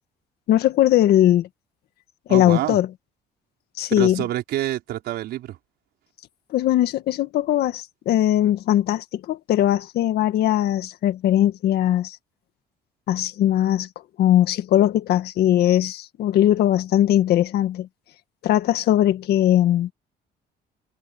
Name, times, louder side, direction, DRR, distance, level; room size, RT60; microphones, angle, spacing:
voice 1, 0.5-1.5 2.3-2.9 3.8-4.2 6.5-12.2 13.1-13.9 14.2-17.9 18.4-19.9, left 12 dB, 70° left, 1.7 m, -20 dB
voice 2, 2.3-2.8 4.0-5.6, right 14 dB, 75° right, 5.0 m, -27 dB
cardioid pair, 110°, 17 cm